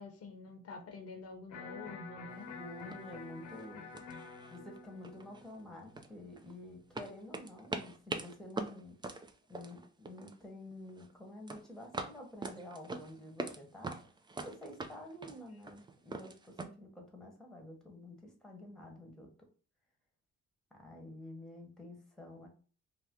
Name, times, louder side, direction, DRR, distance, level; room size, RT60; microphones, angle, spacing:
voice 1, 0.0-2.5 3.7-3.8, left 3 dB, 50° left, 4 dB, 0.8 m, -47 dB
Electric guitar, 1.5-7.6, left 5 dB, 85° left, 1.0 m, -50 dB
sound 1, 2.4-2.5 2.9-3.2 3.5-3.7 3.9-4.8 5.0-6.5 7.0-10.4 10.7-11.1 11.5-13.6 13.8-16.7, right 3 dB, 15° right, 0.3 m, -43 dB
voice 2, 2.5-3.8 4.5-9.0 9.5-14.0 14.4-19.3 20.7-22.5, left 1 dB, ahead, 2 dB, 1.0 m, -49 dB
2.7 x 2.2 x 3.5 m, 0.38 s
cardioid pair, 90°, 30 cm